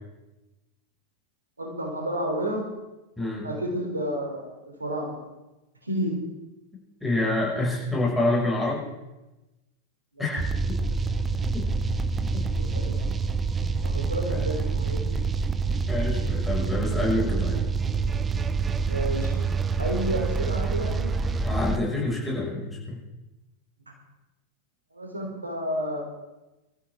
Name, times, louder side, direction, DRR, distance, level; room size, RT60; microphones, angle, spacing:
voice 1, 1.6-2.7 3.4-5.2 5.8-6.2 10.1-10.3 12.5-13.2 13.8-15.2 18.9-19.4 19.8-21.1 24.9-26.1, equal, 80° right, 1 dB, 3.4 m, -31 dB
voice 2, 3.2-3.5 7.0-8.8 10.2-10.4 11.5-11.6 12.3-12.4 14.4-14.5 15.9-17.6 21.4-23.0, left 2 dB, 5° left, -5 dB, 6.0 m, -27 dB
sound 1, 10.4-21.8, right 4 dB, 20° right, 0.7 m, -26 dB
23.5 x 13.5 x 3.7 m, 1.0 s
figure-of-eight pair, 90°, 0 cm